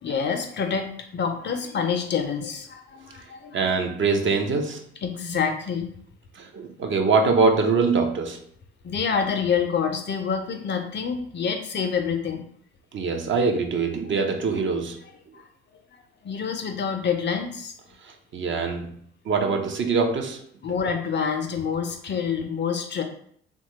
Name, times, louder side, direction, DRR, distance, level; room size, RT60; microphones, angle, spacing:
voice 1, 0.0-3.6 5.0-5.9 8.8-12.4 15.3-15.4 16.2-17.7 20.6-23.0, left 6 dB, 35° left, 5 dB, 0.5 m, -27 dB
voice 2, 3.5-4.8 6.3-8.4 12.9-15.0 18.0-18.9 19.2-20.4, right 4 dB, 40° right, 3 dB, 0.6 m, -23 dB
2.8 x 2.2 x 2.8 m, 0.63 s
hypercardioid pair, 45°, 30 cm